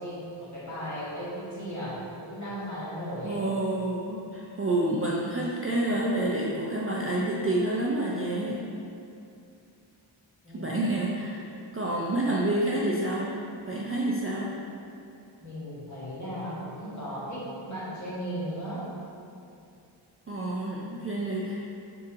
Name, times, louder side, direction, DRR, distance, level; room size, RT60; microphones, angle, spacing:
voice 1, 0.0-3.4 10.4-10.8 15.4-18.9, equal, 35° left, -10 dB, 1.4 m, -36 dB
voice 2, 3.2-8.6 10.5-11.4 11.7-13.3 13.7-14.5 20.3-21.6, right 1 dB, 30° right, -4 dB, 0.4 m, -28 dB
3.9 x 3.8 x 2.6 m, 2.6 s
wide cardioid pair, 60°, 48 cm